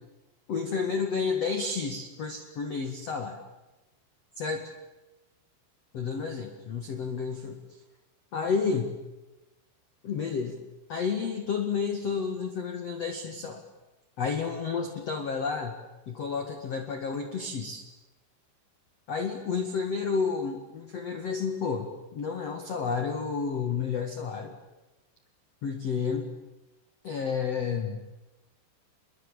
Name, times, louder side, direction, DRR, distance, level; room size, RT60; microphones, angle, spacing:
voice 1, 0.5-3.4 4.4-4.7 5.9-7.8 8.3-9.0 10.0-10.6 10.9-13.6 14.2-15.7 16.1-17.8 19.1-24.5 25.6-26.3 27.0-28.0, left 5 dB, 50° left, 5 dB, 1.9 m, -31 dB
26.0 x 22.5 x 9.0 m, 1.0 s
omnidirectional pair, 5.5 m